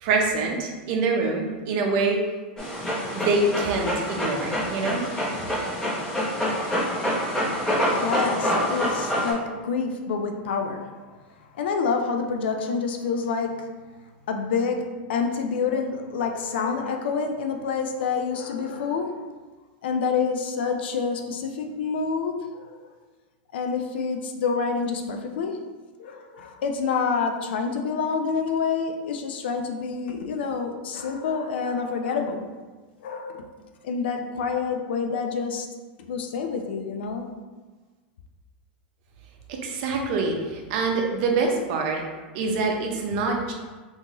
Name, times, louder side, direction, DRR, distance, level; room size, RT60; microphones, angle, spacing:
voice 1, 0.0-2.2 3.1-5.0 39.5-42.0 42.3-43.5, right 3 dB, 55° right, 1 dB, 0.7 m, -25 dB
Dog, 2.6-9.3, equal, 10° left, 1.0 m, -26 dB
voice 2, 7.9-11.0 11.5-13.7 14.3-19.2 19.8-22.8 23.5-25.6 26.0-32.4 33.0-33.5 33.8-35.7 36.1-37.3, left 5 dB, 80° left, 4 dB, 0.4 m, -27 dB
3.6 x 2.7 x 2.9 m, 1.3 s
hypercardioid pair, 125°, 6 cm